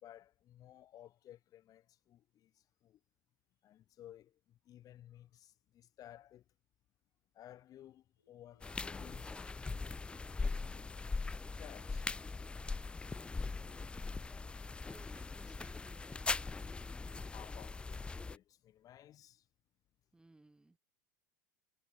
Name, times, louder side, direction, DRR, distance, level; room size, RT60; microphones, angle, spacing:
voice 1, 0.0-3.0 3.6-6.4 7.3-9.5 10.5-11.0 11.5-12.1 14.7-14.9 17.3-19.4, left 12 dB, 35° left, 1.5 m, -57 dB
sound 1, 8.2-14.6, left 4 dB, 85° left, 3.4 m, -75 dB
sound 2, 8.6-18.4, left 4 dB, 10° left, 0.4 m, -40 dB
voice 2, 14.8-16.8 20.1-20.8, right 2 dB, 10° right, 2.3 m, -62 dB
figure-of-eight pair, 80°, 10 cm